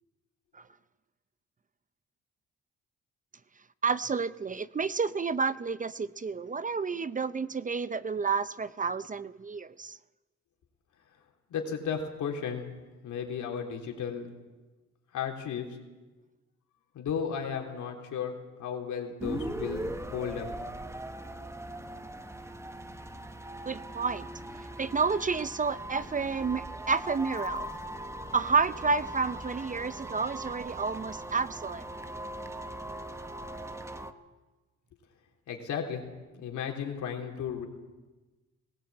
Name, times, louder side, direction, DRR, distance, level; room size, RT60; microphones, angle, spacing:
voice 1, 3.8-10.0 23.7-24.3 24.8-27.7 28.3-31.9, right 5 dB, 25° right, 15 dB, 0.6 m, -30 dB
voice 2, 11.5-12.6 13.0-14.3 15.1-15.7 16.9-20.5 35.5-36.0 36.4-37.7, left 7 dB, 75° left, 2 dB, 3.6 m, -34 dB
sound 1, 19.2-34.1, right 1 dB, 10° right, 1.2 m, -40 dB
19.5 x 17.5 x 8.6 m, 1.2 s
cardioid pair, 90°, 30 cm